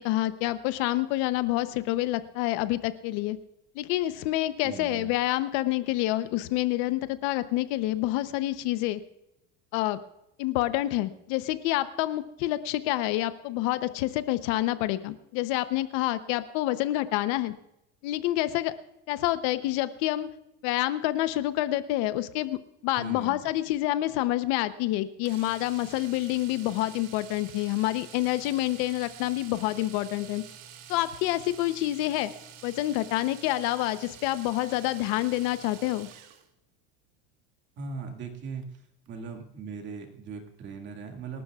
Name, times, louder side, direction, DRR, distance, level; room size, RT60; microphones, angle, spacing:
voice 1, 0.0-3.4 3.7-9.0 9.7-10.0 10.4-17.5 18.0-18.7 19.1-20.3 20.6-30.4 30.9-32.3 32.6-36.1, left 16 dB, 60° left, 12 dB, 0.8 m, -28 dB
voice 2, 4.6-5.1 23.0-23.5 37.8-41.4, right 5 dB, 35° right, 3 dB, 2.1 m, -39 dB
Domestic sounds home sounds, 25.3-36.5 38.6-38.8 39.1-39.2, right 8 dB, 55° right, 1.6 m, -48 dB
27.0 x 12.5 x 2.4 m, 0.85 s
supercardioid pair, 155°, 32 cm